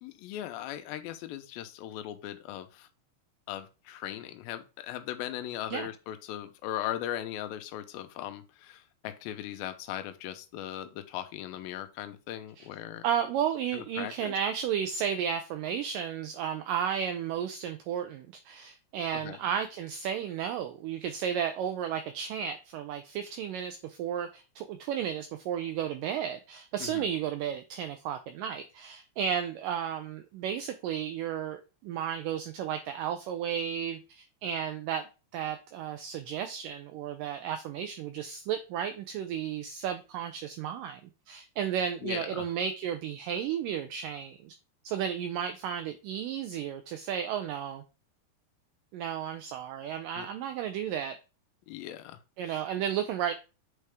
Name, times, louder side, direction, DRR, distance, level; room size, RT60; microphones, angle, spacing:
voice 1, 0.0-2.9 3.5-13.1 13.7-14.3 19.1-19.4 26.8-27.1 42.0-42.5 50.2-50.3 51.7-52.2 52.4-52.6, left 12 dB, 80° left, 2.4 m, -38 dB
voice 2, 13.0-41.0 41.3-44.6 44.8-47.8 48.9-51.2 52.4-53.3, right 8 dB, 90° right, 1.9 m, -33 dB
8.4 x 4.3 x 3.4 m
omnidirectional pair, 4.6 m